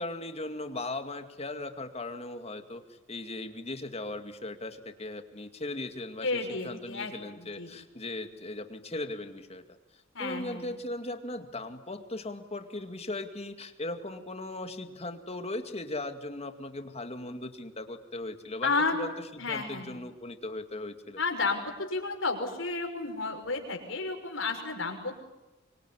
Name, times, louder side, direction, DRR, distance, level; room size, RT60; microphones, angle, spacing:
voice 1, 0.0-9.6 10.2-21.2, left 2 dB, 30° left, 7 dB, 2.2 m, -38 dB
voice 2, 6.2-7.7 10.1-10.7 18.6-19.0 19.4-20.0 21.2-25.2, left 3 dB, 65° left, 4 dB, 5.8 m, -32 dB
24.5 x 24.5 x 9.9 m, 1.1 s
head